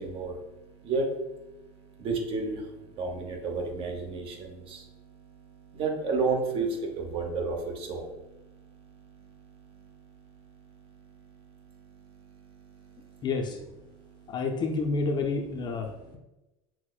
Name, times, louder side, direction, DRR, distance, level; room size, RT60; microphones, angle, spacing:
voice 1, 0.0-13.3 13.8-14.4 15.6-16.2, right 3 dB, 40° right, 2 dB, 0.8 m, -34 dB
voice 2, 13.2-13.6 14.3-16.2, left 4 dB, 35° left, 3 dB, 0.4 m, -29 dB
5.9 x 2.0 x 2.3 m, 1.0 s
supercardioid pair, 125°, 14 cm